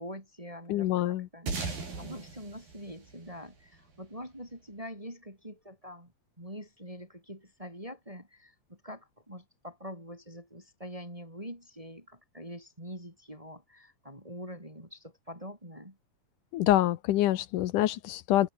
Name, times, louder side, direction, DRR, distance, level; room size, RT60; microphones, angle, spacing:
voice 1, 0.0-1.5 2.0-6.1 6.4-16.0, equal, 10° right, 7.5 m, -44 dB
voice 2, 0.7-1.3 16.5-18.5, left 14 dB, 70° left, 2.3 m, -26 dB
sound 1, 1.5-4.2, right 4 dB, 70° right, 9.6 m, -38 dB
open air
omnidirectional pair, 4.3 m